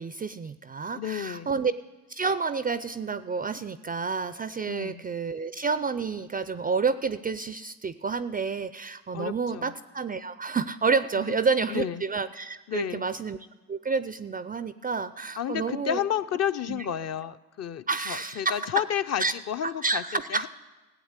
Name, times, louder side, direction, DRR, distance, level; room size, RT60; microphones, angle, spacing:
voice 1, 0.0-1.7 2.1-13.4 13.7-16.0 16.7-16.9 17.9-18.8 19.2-19.3 19.6-20.5, right 5 dB, 20° right, 14 dB, 0.4 m, -29 dB
voice 2, 0.9-1.5 4.7-5.0 9.1-9.7 11.3-11.4 11.7-12.0 12.7-13.1 15.4-20.0 20.3-20.5, left 10 dB, 40° left, 10 dB, 0.6 m, -31 dB
15.5 x 8.3 x 8.1 m, 1.2 s
supercardioid pair, 80°, 43 cm